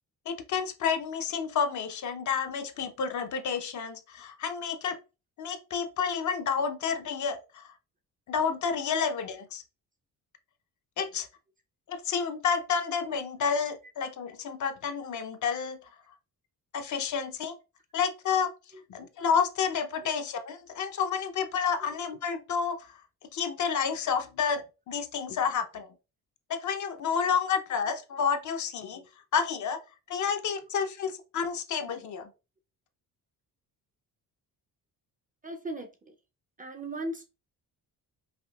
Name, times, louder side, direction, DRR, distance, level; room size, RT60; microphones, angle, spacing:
voice 1, 0.3-5.0 5.4-7.7 8.3-9.6 11.0-11.3 11.9-15.8 16.7-17.6 17.9-18.5 18.9-22.9 23.3-25.9 26.5-29.0 29.3-29.8 30.1-32.3, left 6 dB, 50° left, 0.6 m, -30 dB
voice 2, 35.4-35.9 36.6-37.4, right 1 dB, 20° right, 0.4 m, -37 dB
5.0 x 2.5 x 2.2 m
cardioid pair, 110°, 37 cm